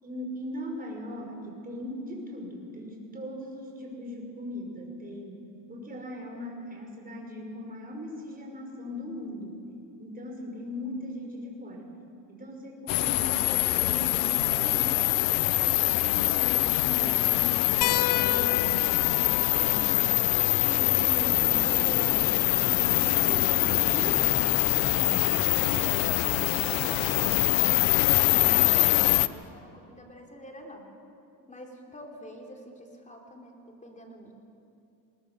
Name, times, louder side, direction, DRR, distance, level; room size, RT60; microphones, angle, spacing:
voice 1, 0.0-9.6 10.0-11.9 12.3-15.4 15.9-22.5 22.8-25.8, left 1 dB, 20° right, 0 dB, 5.5 m, -39 dB
sound 1, 12.9-29.3, left 19 dB, 85° left, 0.7 m, -24 dB
sound 2, 17.8-22.9 24.4-24.5 26.2-26.3, left 16 dB, 45° left, 0.6 m, -35 dB
sound 3, 20.4-27.5, right 1 dB, 5° right, 0.9 m, -41 dB
voice 2, 25.7-27.8 28.1-30.8 31.5-34.4, equal, 15° left, 1 dB, 3.6 m, -46 dB
21.5 x 19.5 x 6.9 m, 2.5 s
cardioid pair, 100°, 44 cm